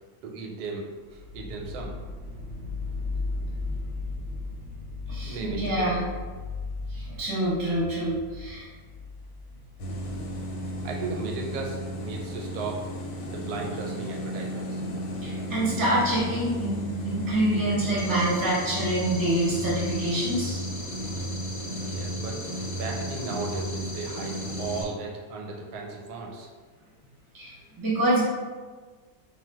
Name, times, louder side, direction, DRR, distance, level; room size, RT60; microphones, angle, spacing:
voice 1, 0.2-1.9 4.1-4.4 5.2-6.0 10.8-12.8 13.3-14.8 21.7-26.5, right 3 dB, 85° right, 0 dB, 1.1 m, -36 dB
sound 1, 1.1-11.0, left 3 dB, 65° right, 0.7 m, -36 dB
voice 2, 5.1-6.0 6.9-8.6 15.2-16.8 17.0-20.6 27.3-28.2, right 1 dB, 20° right, -7 dB, 0.5 m, -26 dB
sound 2, 9.8-24.9, equal, 90° left, 1.1 m, -34 dB
sound 3, 18.0-24.8, left 2 dB, 70° left, 0.5 m, -41 dB
2.4 x 2.2 x 3.4 m, 1.4 s
omnidirectional pair, 1.6 m